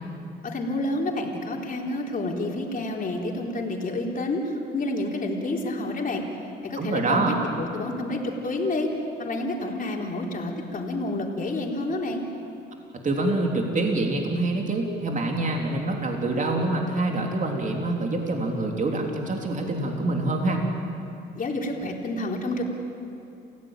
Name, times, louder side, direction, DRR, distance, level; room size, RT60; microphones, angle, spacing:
voice 1, 0.4-6.2 6.6-8.9 9.2-12.3 21.3-22.6, left 2 dB, 45° left, -1 dB, 4.1 m, -29 dB
voice 2, 6.8-7.3 13.0-20.6, right 2 dB, 40° right, 1 dB, 3.5 m, -26 dB
29.0 x 16.0 x 9.1 m, 2.8 s
cardioid pair, 90°, 20 cm